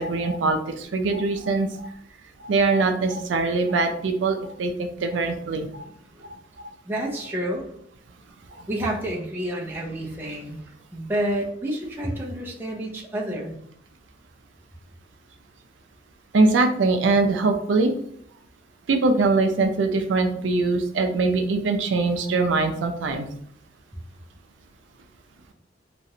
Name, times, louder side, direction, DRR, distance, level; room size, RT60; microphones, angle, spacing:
voice 1, 0.0-1.9 2.4-5.8 6.6-6.7 8.5-8.7 16.3-17.9 18.9-23.3, right 3 dB, 80° right, 5 dB, 0.4 m, -22 dB
voice 2, 5.2-5.8 6.1-6.3 6.9-7.7 8.7-13.6, right 1 dB, 10° right, -3 dB, 0.6 m, -30 dB
3.0 x 2.4 x 2.7 m, 0.69 s
head